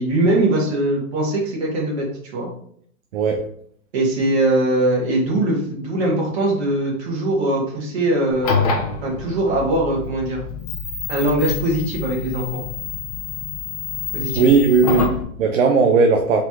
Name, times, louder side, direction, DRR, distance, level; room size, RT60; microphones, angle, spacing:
voice 1, 0.0-2.5 3.9-10.4 11.1-12.6 14.1-14.5 14.9-15.1, right 1 dB, 45° right, -2 dB, 1.8 m, -21 dB
voice 2, 3.1-3.5 14.3-16.4, right 4 dB, 60° right, 4 dB, 0.7 m, -17 dB
sound 1, 8.3-15.2, left 5 dB, 30° left, 0.5 m, -27 dB
3.8 x 3.1 x 3.6 m, 0.63 s
hypercardioid pair, 160°, 43 cm